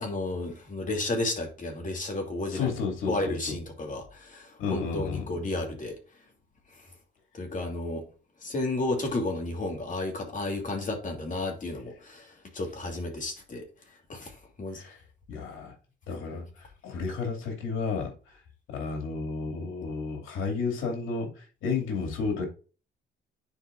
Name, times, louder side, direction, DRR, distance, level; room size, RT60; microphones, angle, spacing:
voice 1, 0.0-2.7 3.1-6.0 6.8-6.9 7.3-8.1 8.4-13.7 14.1-14.8, left 2 dB, 40° left, 2.7 m, -32 dB
voice 2, 2.5-3.6 4.6-5.3 14.7-15.0 15.3-15.7 16.1-18.1 18.7-22.5, left 4 dB, 85° left, 2.5 m, -32 dB
9.9 x 4.5 x 2.6 m
cardioid pair, 90°, 20 cm